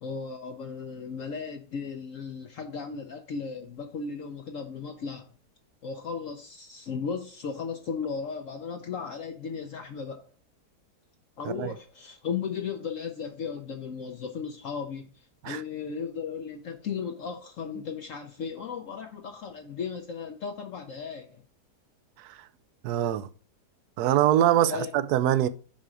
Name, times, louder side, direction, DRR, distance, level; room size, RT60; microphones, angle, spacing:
voice 1, 0.0-5.3 5.8-10.3 11.4-21.4 24.7-24.9, left 6 dB, 65° left, 0.9 m, -36 dB
voice 2, 22.8-23.3 24.0-25.5, right 12 dB, 75° right, 1.1 m, -23 dB
5.7 x 5.1 x 4.8 m
omnidirectional pair, 1.8 m